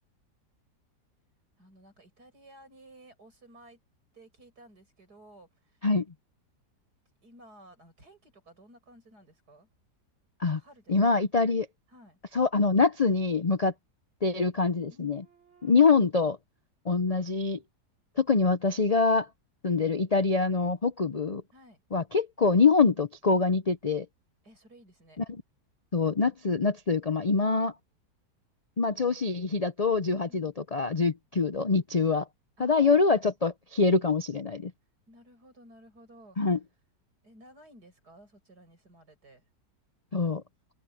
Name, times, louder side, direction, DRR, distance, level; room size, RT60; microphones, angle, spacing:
voice 1, 1.6-3.8 4.1-5.8 7.2-9.7 10.6-11.2 11.9-12.2 14.9-15.9 21.5-21.8 24.4-25.2 32.6-33.2 35.1-36.5 37.2-39.4, right 1 dB, 65° right, 8.3 m, -55 dB
voice 2, 10.9-11.7 12.3-13.7 14.2-15.2 15.6-16.4 16.9-17.6 18.2-19.3 19.6-21.4 21.9-24.1 25.2-25.3 25.9-27.7 28.8-32.2 32.6-34.7 36.4-36.6 40.1-40.4, left 4 dB, 65° left, 0.3 m, -24 dB
open air
omnidirectional pair, 1.8 m